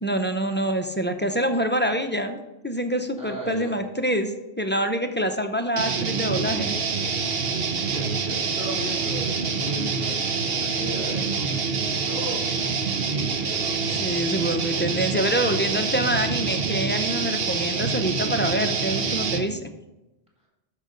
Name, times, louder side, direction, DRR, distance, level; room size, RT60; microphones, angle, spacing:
voice 1, 0.0-6.8 14.0-19.7, right 1 dB, 15° left, 5 dB, 0.5 m, -26 dB
voice 2, 3.2-3.7 7.7-11.8 12.1-14.0, equal, 5° right, -4 dB, 3.7 m, -37 dB
sound 1, 5.8-19.5, right 5 dB, 70° right, 1.0 m, -26 dB
13.0 x 5.7 x 3.8 m, 1.0 s
omnidirectional pair, 1.0 m